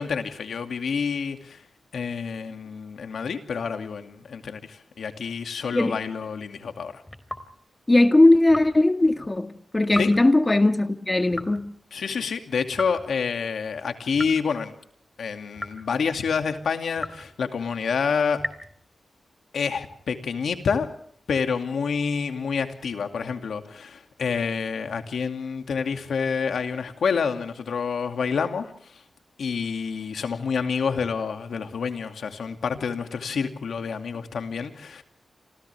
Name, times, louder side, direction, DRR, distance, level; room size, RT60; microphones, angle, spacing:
voice 1, 0.0-1.6 1.9-7.0 10.0-10.1 11.9-14.8 15.2-18.4 19.5-20.9 21.3-29.0 29.4-35.0, left 6 dB, 85° left, 2.5 m, -28 dB
sound 1, 7.1-7.5 8.5-8.8 9.9-10.3 11.3-11.7 12.7-13.1 14.1-14.5 15.6-15.9 17.0-17.4 18.4-18.8, left 1 dB, 10° left, 3.6 m, -35 dB
voice 2, 7.9-11.7, left 2 dB, 25° left, 1.8 m, -19 dB
30.0 x 27.0 x 3.5 m
cardioid pair, 65°, 0 cm